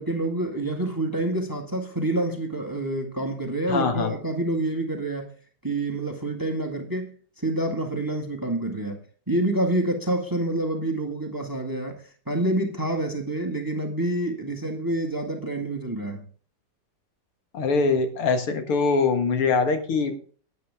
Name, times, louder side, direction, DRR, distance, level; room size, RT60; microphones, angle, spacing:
voice 1, 0.0-5.3 5.6-9.0 9.3-16.2, right 1 dB, 10° right, 1.6 m, -27 dB
voice 2, 3.7-4.1 17.5-20.1, left 4 dB, 80° left, 2.6 m, -23 dB
12.0 x 9.7 x 3.6 m
omnidirectional pair, 2.4 m